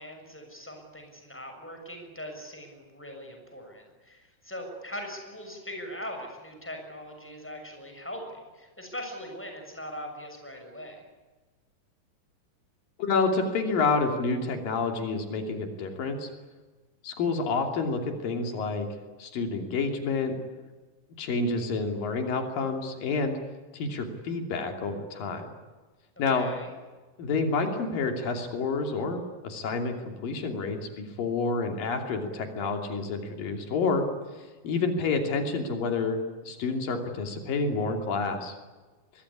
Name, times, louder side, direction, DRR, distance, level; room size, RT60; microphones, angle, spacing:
voice 1, 0.0-11.0 26.3-26.7, equal, 5° left, 3 dB, 6.4 m, -41 dB
voice 2, 13.0-16.3 17.0-18.9 19.2-20.4 21.2-23.4 23.7-25.5 26.2-26.5 27.2-34.0 34.6-38.5, left 4 dB, 90° left, 5 dB, 4.7 m, -29 dB
24.5 x 22.0 x 9.9 m, 1.3 s
omnidirectional pair, 3.9 m